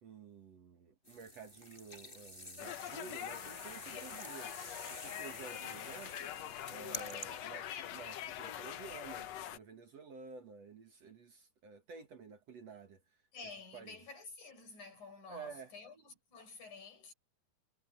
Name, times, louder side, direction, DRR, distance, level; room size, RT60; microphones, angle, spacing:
voice 1, 0.0-13.0 13.7-14.0 15.3-15.7, right 5 dB, 55° right, 2.3 m, -52 dB
sound 1, 1.0-7.3, left 1 dB, 15° left, 6.3 m, -49 dB
sound 2, 2.6-9.6, left 11 dB, 70° left, 1.6 m, -44 dB
voice 2, 5.5-6.0 13.3-17.1, left 4 dB, 50° left, 8.9 m, -51 dB
omnidirectional pair, 4.4 m